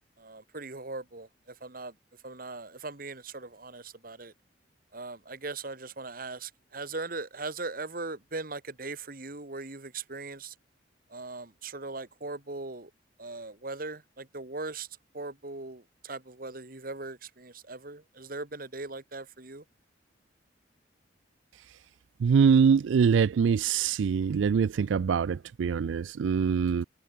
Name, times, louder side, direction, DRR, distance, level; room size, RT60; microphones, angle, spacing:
voice 1, 0.2-1.9 2.2-4.3 4.9-10.6 11.1-12.9 13.2-14.9 15.1-19.6, right 3 dB, 50° right, 2.1 m, -39 dB
voice 2, 22.2-26.8, right 6 dB, 85° right, 0.4 m, -24 dB
head